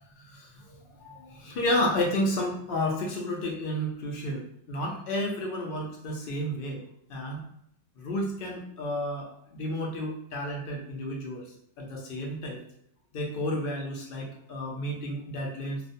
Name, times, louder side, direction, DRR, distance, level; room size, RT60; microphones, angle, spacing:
voice 1, 0.2-6.8 7.1-7.4 8.0-11.4 11.8-12.6 13.1-15.8, left 1 dB, 60° left, -1 dB, 0.6 m, -31 dB
2.4 x 2.0 x 2.5 m, 0.69 s
omnidirectional pair, 1.2 m